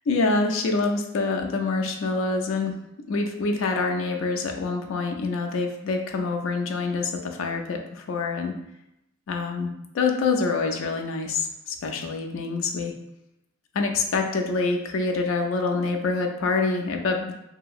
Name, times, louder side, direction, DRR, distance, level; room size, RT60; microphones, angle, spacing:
voice 1, 0.1-2.7 3.1-8.5 9.3-12.9 13.7-17.4, left 3 dB, 65° left, 4 dB, 0.4 m, -26 dB
2.8 x 2.7 x 2.4 m, 0.85 s
head